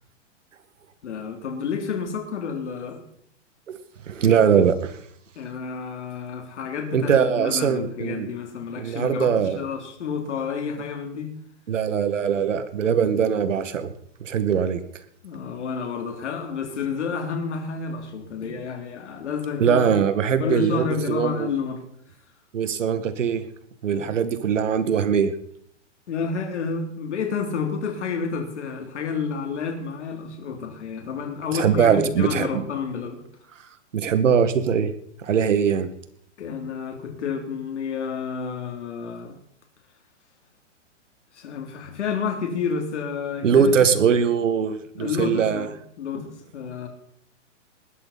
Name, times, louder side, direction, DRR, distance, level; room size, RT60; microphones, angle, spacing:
voice 1, 1.0-3.0 5.4-11.3 15.2-19.9 20.4-21.8 23.9-24.1 26.1-33.2 36.4-39.4 41.3-43.9 45.0-46.3 46.5-46.9, left 5 dB, 70° left, 4 dB, 3.4 m, -30 dB
voice 2, 4.1-4.9 6.9-8.3 8.8-9.6 11.7-13.9 14.2-14.8 19.6-21.5 22.5-23.5 23.8-25.3 31.5-32.6 33.9-34.9 35.2-35.9 43.4-45.7, right 7 dB, 85° right, 10 dB, 2.1 m, -21 dB
20.5 x 11.5 x 4.3 m, 0.69 s
hypercardioid pair, 170°, 37 cm